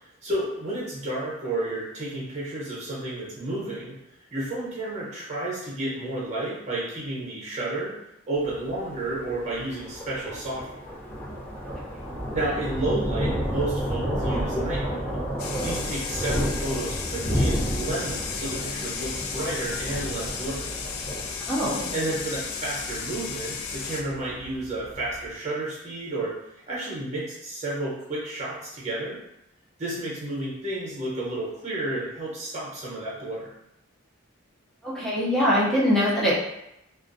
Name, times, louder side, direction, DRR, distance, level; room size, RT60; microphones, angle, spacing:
voice 1, 0.2-4.0 4.3-7.9 8.3-10.9 12.3-15.1 15.6-20.7 21.9-26.3 26.7-29.2 29.8-33.5, right 2 dB, 35° right, -6 dB, 0.8 m, -31 dB
Thunder, 8.4-25.3, equal, 40° left, 0.8 m, -31 dB
sound 1, 15.4-24.0, left 5 dB, 80° left, 0.3 m, -34 dB
voice 2, 21.5-21.9 34.8-36.3, equal, ahead, -7 dB, 0.5 m, -23 dB
2.4 x 2.1 x 2.5 m, 0.81 s
head